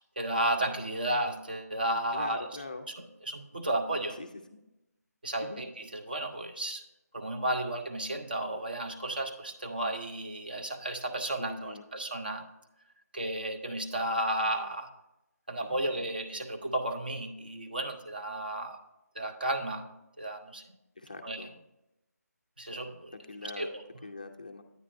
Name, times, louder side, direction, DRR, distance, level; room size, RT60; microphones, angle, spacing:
voice 1, 0.2-2.5 3.0-4.2 5.2-6.8 7.1-12.4 13.1-14.9 15.5-18.8 19.2-19.9 20.2-20.6 21.2-21.5 22.6-23.1 23.4-23.8, right 1 dB, 35° right, 5 dB, 0.5 m, -33 dB
voice 2, 2.1-2.9 4.1-4.6 5.4-5.6 11.4-11.8 15.6-16.0 21.0-21.5 23.3-23.7 24.0-24.6, left 2 dB, 30° left, 5 dB, 0.4 m, -43 dB
9.1 x 9.1 x 2.5 m, 0.91 s
figure-of-eight pair, 175°, 9 cm